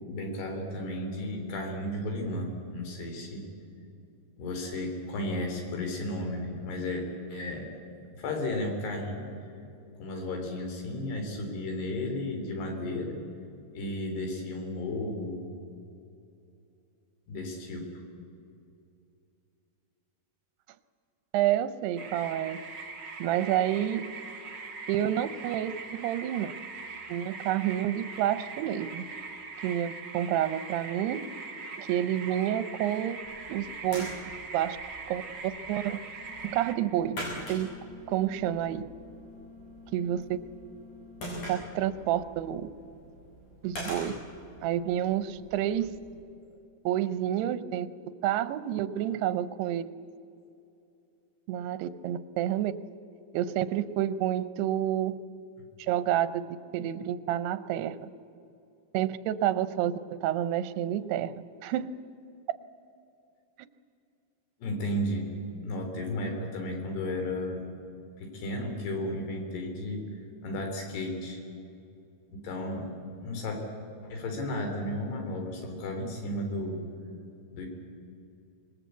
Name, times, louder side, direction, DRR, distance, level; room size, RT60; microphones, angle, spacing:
voice 1, 0.1-3.5 4.4-7.7 8.1-9.3 10.0-13.2 13.7-15.5 17.3-17.9 64.6-65.3 65.6-67.7 68.2-70.0 70.4-71.4 72.3-72.9 73.2-73.6 74.0-76.8 77.5-77.7, left 1 dB, 85° left, 3 dB, 5.5 m, -33 dB
voice 2, 21.3-22.6 23.2-24.1 24.9-26.5 27.1-29.0 29.6-31.3 31.8-33.2 33.5-34.1 34.5-34.8 35.1-36.0 36.4-37.2 37.5-37.8 38.1-38.9 39.9-40.4 41.5-42.7 43.6-44.2 44.6-46.0 46.8-47.9 48.2-49.9 51.5-52.7 53.3-55.2 55.8-58.0 58.9-61.3 61.6-61.9, right 11 dB, 85° right, 13 dB, 2.8 m, -29 dB
sound 1, 22.0-36.7, right 4 dB, 50° right, 1.3 m, -42 dB
sound 2, 33.1-46.2, equal, 50° left, 7.9 m, -44 dB
sound 3, 36.2-41.3, left 4 dB, 30° right, 4.7 m, -51 dB
25.5 x 20.0 x 8.2 m, 2.6 s
omnidirectional pair, 4.6 m